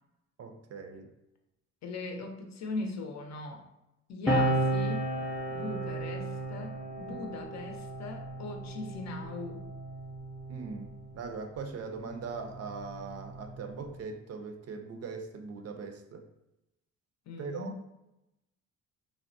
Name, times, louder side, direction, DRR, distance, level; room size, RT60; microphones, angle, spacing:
voice 1, 0.4-1.1 7.1-7.2 10.5-16.3 17.4-17.7, right 4 dB, 55° right, 5 dB, 0.5 m, -40 dB
voice 2, 1.8-3.7 4.1-5.0 5.5-9.7 17.3-17.7, left 3 dB, 60° left, 3 dB, 0.6 m, -39 dB
sound 1, 4.3-11.2 12.2-14.0, right 1 dB, ahead, 0.6 m, -34 dB
3.4 x 2.1 x 2.6 m, 0.92 s
cardioid pair, 90°, 30 cm